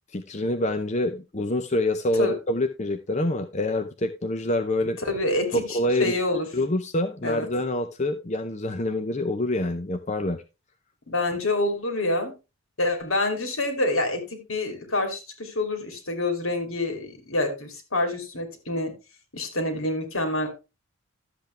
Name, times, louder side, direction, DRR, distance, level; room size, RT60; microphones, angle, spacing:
voice 1, 0.1-5.0 5.5-6.2 6.5-10.4, left 1 dB, 30° left, 8 dB, 0.7 m, -26 dB
voice 2, 5.0-6.5 7.2-7.5 11.1-12.3 12.8-18.9 19.3-20.5, left 2 dB, 70° left, 5 dB, 2.9 m, -27 dB
12.0 x 8.0 x 3.3 m, 0.28 s
head